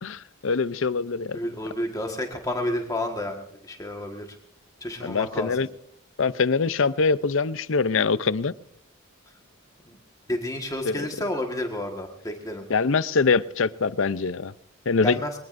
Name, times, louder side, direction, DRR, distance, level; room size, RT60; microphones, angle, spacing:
voice 1, 0.0-1.4 5.0-5.7 6.2-8.5 10.8-11.1 12.7-14.5 14.9-15.2, left 4 dB, 70° left, 0.6 m, -23 dB
voice 2, 1.3-4.3 4.8-5.6 9.9-10.0 10.3-12.6 15.0-15.3, left 1 dB, 15° left, 1.6 m, -30 dB
22.5 x 20.0 x 2.6 m
head